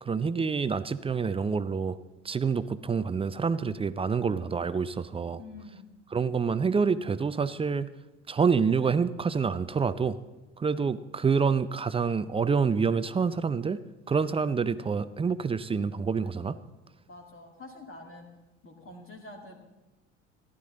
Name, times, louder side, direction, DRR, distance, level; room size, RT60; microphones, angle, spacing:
voice 1, 0.0-2.0 2.2-5.4 6.1-7.9 8.3-10.2 10.6-13.8 14.1-16.6, right 5 dB, 15° right, 14 dB, 0.4 m, -27 dB
voice 2, 5.4-5.9 17.1-18.3 18.6-19.6, left 2 dB, 35° left, 1 dB, 2.4 m, -46 dB
14.5 x 11.0 x 3.8 m, 1.1 s
hypercardioid pair, 60°, 37 cm